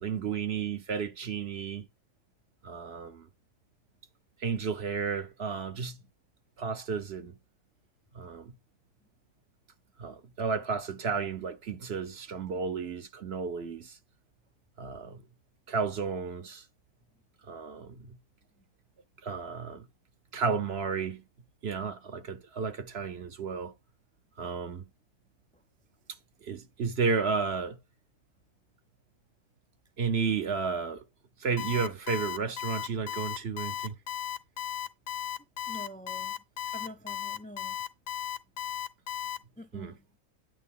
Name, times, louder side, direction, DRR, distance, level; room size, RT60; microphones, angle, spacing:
voice 1, 0.0-1.9 2.6-3.3 4.4-6.0 6.6-7.3 8.1-8.5 10.0-14.0 14.8-15.2 15.7-16.6 17.5-18.2 19.2-19.8 20.3-21.2 21.6-23.7 24.4-24.8 26.4-27.8 30.0-31.0 31.4-33.9 39.7-39.9, right 5 dB, 55° right, 1.0 m, -32 dB
Alarm, 31.6-39.4, left 10 dB, 70° left, 1.3 m, -35 dB
voice 2, 35.7-36.4 36.7-37.8 39.6-40.0, equal, 10° left, 0.4 m, -45 dB
9.1 x 4.6 x 3.6 m
omnidirectional pair, 1.4 m